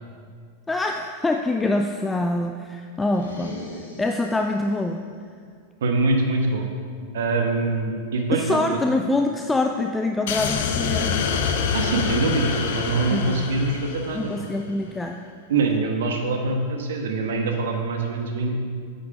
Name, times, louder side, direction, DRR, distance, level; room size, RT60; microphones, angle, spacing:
voice 1, 0.7-3.6 4.0-5.0 8.3-11.2 13.1-13.5 14.1-15.2, left 2 dB, 10° left, 5 dB, 0.4 m, -25 dB
sound 1, 3.0-4.7, left 2 dB, 75° left, 1.6 m, -39 dB
voice 2, 5.8-6.6 7.1-8.8 11.7-14.3 15.5-18.5, right 3 dB, 60° right, 3 dB, 1.3 m, -24 dB
sound 2, 10.3-14.6, left 6 dB, 55° left, 0.7 m, -26 dB
8.5 x 8.2 x 5.0 m, 2.1 s
figure-of-eight pair, 90°, 0 cm